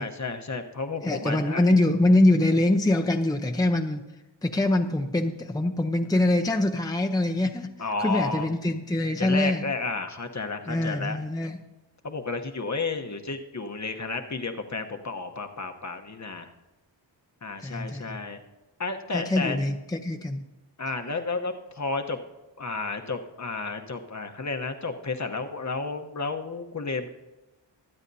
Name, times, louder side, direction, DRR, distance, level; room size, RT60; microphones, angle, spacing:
voice 1, 0.0-1.7 7.8-8.5 9.2-11.2 12.0-16.5 17.4-18.4 18.8-19.6 20.8-22.2 22.6-27.1, left 3 dB, 40° left, 5 dB, 1.0 m, -32 dB
voice 2, 1.0-4.0 4.4-7.7 8.0-9.7 10.7-11.6 17.6-18.2 19.1-20.4, left 1 dB, 10° left, 3 dB, 0.7 m, -24 dB
25.5 x 8.9 x 2.7 m, 1.1 s
wide cardioid pair, 70°, 44 cm